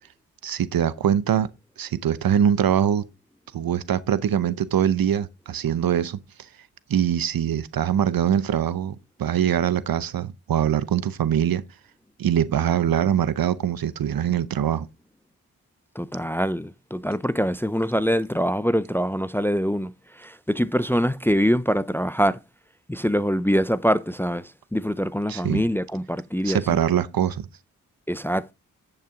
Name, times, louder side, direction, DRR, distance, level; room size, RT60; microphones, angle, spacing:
voice 1, 0.4-1.5 1.8-3.0 3.5-6.2 6.9-11.6 12.2-14.9 25.3-25.6 26.4-27.5, right 9 dB, 65° right, 0.8 m, -23 dB
voice 2, 16.0-22.4 22.9-26.8 28.1-28.5, equal, 5° left, 0.5 m, -24 dB
10.5 x 5.7 x 3.6 m
supercardioid pair, 40°, 37 cm